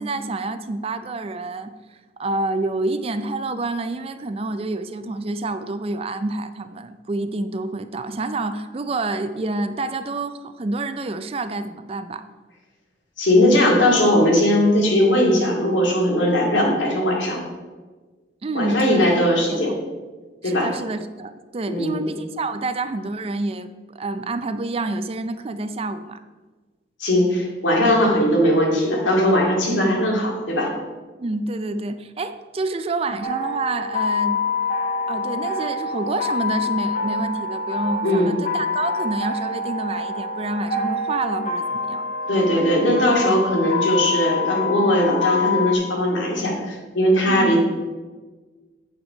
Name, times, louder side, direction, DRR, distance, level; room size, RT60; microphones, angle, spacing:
voice 1, 0.0-1.7 2.2-12.3 16.4-16.5 18.4-19.2 19.5-19.7 20.4-26.2 31.2-34.4 35.1-42.1 47.2-47.6, right 2 dB, 30° right, 11 dB, 0.4 m, -28 dB
voice 2, 13.2-17.4 18.5-19.8 20.4-20.7 21.7-22.0 27.0-30.7 38.0-38.3 42.3-47.6, left 1 dB, 85° left, -1 dB, 2.3 m, -19 dB
sound 1, 33.2-45.7, left 3 dB, 45° left, 1.2 m, -26 dB
8.1 x 5.9 x 5.3 m, 1.3 s
head